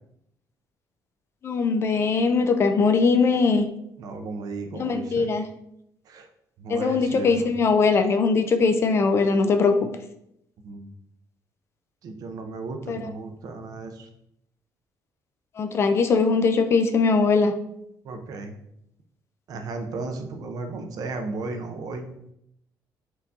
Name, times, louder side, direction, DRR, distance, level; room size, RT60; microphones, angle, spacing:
voice 1, 1.4-3.7 4.7-5.5 6.7-9.7 12.9-13.1 15.6-17.5, left 4 dB, 35° left, 7 dB, 0.3 m, -21 dB
voice 2, 4.0-5.3 6.1-6.3 6.6-7.5 10.6-10.9 12.0-14.1 18.0-18.5 19.5-22.1, right 3 dB, 55° right, 5 dB, 0.5 m, -35 dB
4.5 x 2.7 x 3.5 m, 0.78 s
cardioid pair, 160°, 8 cm